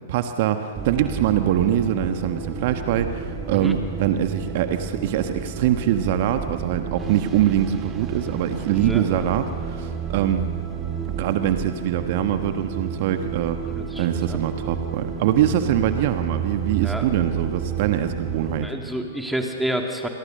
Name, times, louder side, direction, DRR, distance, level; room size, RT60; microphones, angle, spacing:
voice 1, 0.1-10.4 11.1-13.6 14.0-18.7, right 10 dB, 50° right, 8 dB, 1.4 m, -23 dB
sound 1, 0.8-18.6, right 7 dB, 20° right, 2.2 m, -31 dB
voice 2, 8.7-9.3 13.7-14.4 16.8-17.1 18.6-20.1, right 1 dB, ahead, 2 dB, 2.9 m, -29 dB
29.0 x 22.0 x 6.7 m, 2.5 s
figure-of-eight pair, 105°, 0 cm